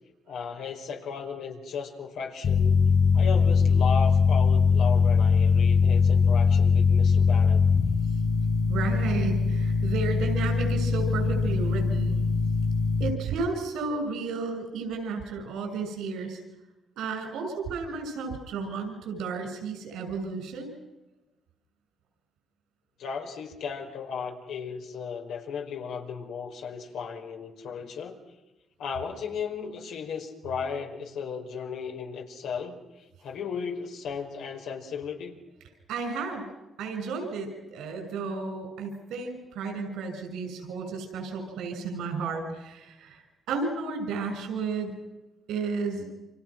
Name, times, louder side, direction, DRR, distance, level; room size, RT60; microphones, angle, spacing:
voice 1, 0.3-2.8 3.1-7.6 23.0-28.2 28.8-35.4, left 6 dB, 80° left, 2 dB, 5.1 m, -35 dB
sound 1, 2.4-13.1, left 5 dB, 55° left, 6.7 m, -22 dB
voice 2, 8.7-12.2 13.0-16.4 17.0-20.7 35.9-36.5 36.8-43.2 43.5-44.9 45.5-46.1, right 4 dB, 85° right, 5 dB, 6.5 m, -32 dB
29.5 x 26.5 x 6.1 m, 1.0 s
cardioid pair, 90°, 0 cm